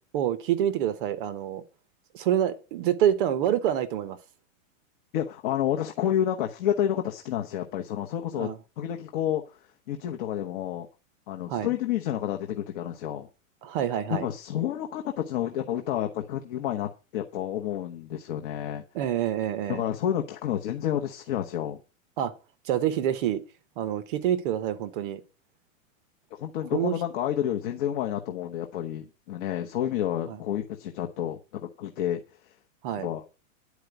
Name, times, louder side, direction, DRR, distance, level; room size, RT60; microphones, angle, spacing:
voice 1, 0.1-1.6 2.1-4.2 8.3-8.6 11.5-11.7 13.6-14.3 18.9-19.8 22.2-22.3 22.6-23.4 23.8-25.2 26.7-27.0 30.3-30.4 32.8-33.1, right 10 dB, 40° right, 1.0 m, -27 dB
voice 2, 5.1-8.5 8.8-9.6 9.9-10.9 11.3-13.3 14.1-18.8 19.7-21.8 26.3-32.5 32.9-33.2, left 11 dB, 40° left, 1.0 m, -30 dB
10.5 x 4.8 x 7.9 m
supercardioid pair, 165°, 40 cm